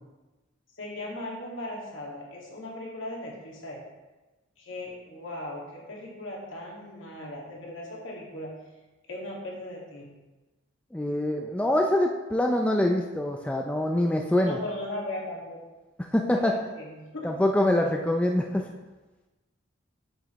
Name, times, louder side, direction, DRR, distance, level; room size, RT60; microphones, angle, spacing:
voice 1, 0.8-3.8 4.6-8.6 9.1-10.2 14.4-15.6 16.3-17.3, left 1 dB, 70° left, -3 dB, 2.0 m, -38 dB
voice 2, 10.9-14.6 16.1-16.5 17.2-18.7, left 1 dB, 5° left, 2 dB, 0.3 m, -24 dB
7.6 x 7.3 x 3.0 m, 1.1 s
head